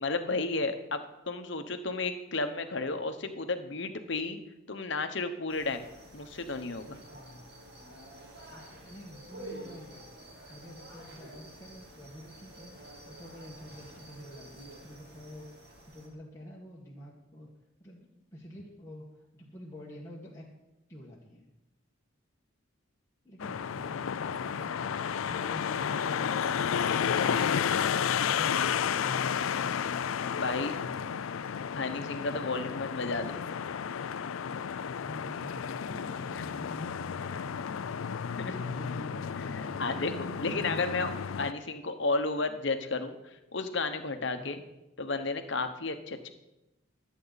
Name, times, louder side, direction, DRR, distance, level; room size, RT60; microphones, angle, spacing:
voice 1, 0.0-4.4 4.7-5.9 6.1-7.0 30.4-30.7 31.8-33.4 36.3-36.4 38.3-38.6 39.4-41.1 41.4-43.2 43.5-44.6 45.0-46.3, left 3 dB, 60° left, 8 dB, 1.1 m, -33 dB
sound 1, 5.5-16.1, right 1 dB, 55° right, 2.8 m, -49 dB
voice 2, 7.1-7.4 8.5-17.5 17.8-20.5 20.9-21.4 23.2-24.9 25.3-27.5 28.2-29.2 29.5-30.1 30.5-31.3 35.0-37.9 38.6-40.9 44.4-44.6, equal, 15° left, -5 dB, 1.5 m, -48 dB
sound 2, 23.4-41.5, left 7 dB, 80° left, 0.4 m, -32 dB
23.5 x 8.4 x 4.1 m, 0.94 s
head